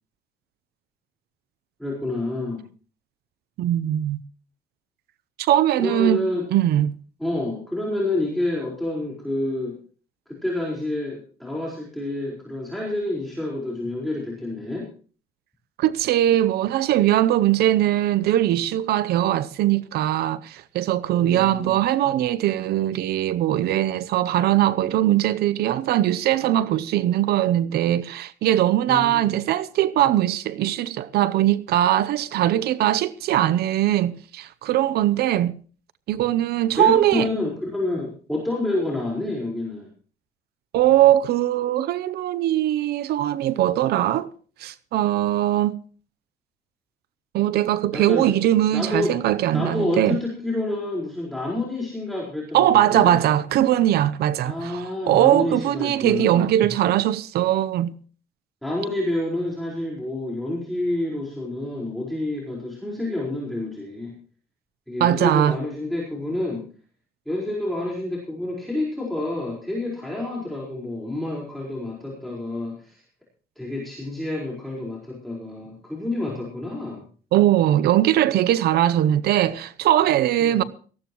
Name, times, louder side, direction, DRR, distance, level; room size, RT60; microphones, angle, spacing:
voice 1, 1.8-2.7 5.8-6.4 7.2-9.8 10.3-14.9 21.2-21.7 28.9-29.3 36.7-39.9 47.9-48.3 48.7-49.1 49.5-53.2 54.4-56.5 58.6-64.1 64.9-66.7 67.3-73.0 73.6-77.0 80.4-80.7, left 2 dB, ahead, 4.5 m, -28 dB
voice 2, 3.6-4.2 5.4-6.2 6.5-6.9 15.8-35.5 36.1-37.3 40.7-44.3 44.6-45.8 47.3-50.2 52.5-58.0 65.0-65.6 77.3-80.6, right 12 dB, 70° right, 0.7 m, -20 dB
19.0 x 14.5 x 3.0 m
cardioid pair, 110°, 17 cm